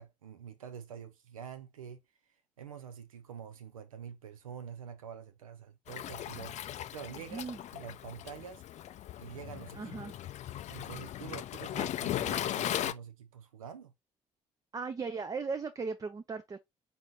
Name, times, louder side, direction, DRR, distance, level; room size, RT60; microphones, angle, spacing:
voice 1, 0.0-2.0 2.6-8.6 9.2-9.9 10.7-13.9, right 8 dB, 80° right, 0.4 m, -47 dB
Waves surf, 5.9-12.9, left 12 dB, 40° left, 0.4 m, -38 dB
voice 2, 9.7-10.1 11.8-11.9 14.7-16.6, right 4 dB, 20° right, 0.4 m, -37 dB
4.0 x 3.5 x 2.8 m
figure-of-eight pair, 45°, 18 cm